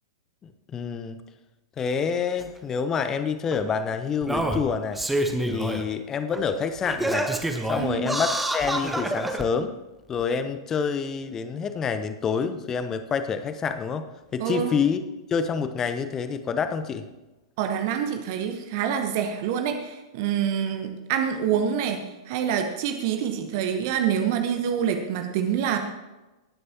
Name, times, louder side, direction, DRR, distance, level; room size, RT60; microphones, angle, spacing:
voice 1, 0.4-1.2 1.8-5.0 5.5-7.3 7.7-9.7 10.1-14.1 14.3-15.0 15.3-17.1, left 6 dB, 20° left, 10 dB, 0.9 m, -27 dB
Singing, 2.4-2.5 3.5-3.6 4.2-5.8 6.3-6.4 6.8-9.4 10.2-10.3, right 1 dB, 5° right, 1.1 m, -27 dB
voice 2, 14.4-14.7 17.6-25.8, right 8 dB, 45° right, 5 dB, 1.2 m, -26 dB
18.5 x 9.7 x 3.0 m, 1.1 s
figure-of-eight pair, 100°, 2 cm